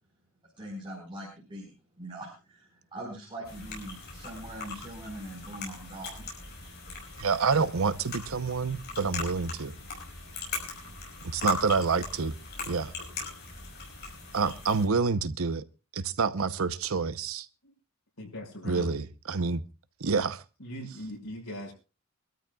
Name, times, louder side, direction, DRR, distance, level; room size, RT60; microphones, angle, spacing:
voice 1, 0.6-6.2, right 1 dB, 25° right, 4.8 m, -42 dB
sound 1, 3.4-14.9, left 4 dB, 50° left, 5.7 m, -39 dB
voice 2, 7.2-9.7 11.2-12.4 12.7-12.9 14.3-15.6 15.9-17.5 18.6-19.6 20.0-20.4, right 4 dB, 75° right, 0.8 m, -28 dB
voice 3, 18.2-18.9 20.6-21.7, equal, 85° left, 5.9 m, -40 dB
25.0 x 13.0 x 2.3 m
head